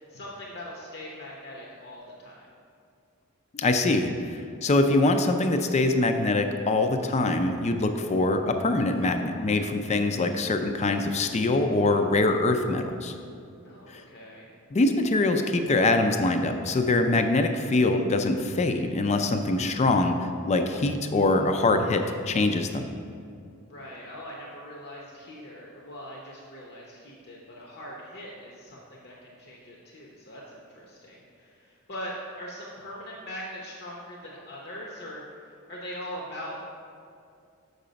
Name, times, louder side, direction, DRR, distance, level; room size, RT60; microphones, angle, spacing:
voice 1, 0.0-2.5 13.6-14.5 23.7-36.5, equal, 50° left, -3 dB, 0.8 m, -41 dB
voice 2, 3.5-13.1 13.9-14.0 14.7-22.9, left 2 dB, 30° left, 6 dB, 0.4 m, -24 dB
6.7 x 4.8 x 5.1 m, 2.3 s
head